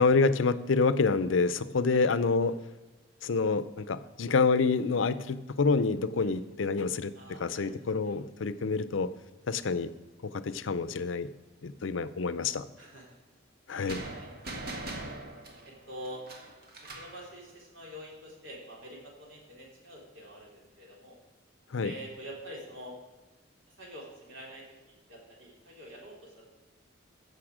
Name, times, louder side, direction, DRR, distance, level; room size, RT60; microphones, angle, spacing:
voice 1, 0.0-2.5 3.2-7.1 7.4-9.1 9.5-9.9 10.2-11.3 11.6-12.6 13.7-14.0 21.7-21.9, left 4 dB, 90° left, 14 dB, 0.6 m, -27 dB
voice 2, 7.1-7.7 8.0-8.1 8.5-8.6 12.8-13.1 13.7-14.3 14.7-14.8 15.6-16.3 16.8-21.2 21.8-23.0 23.7-26.4, equal, 85° right, -2 dB, 3.7 m, -46 dB
sound 1, 13.9-17.2, right 2 dB, 55° right, 1.7 m, -41 dB
15.0 x 6.8 x 5.0 m, 1.2 s
head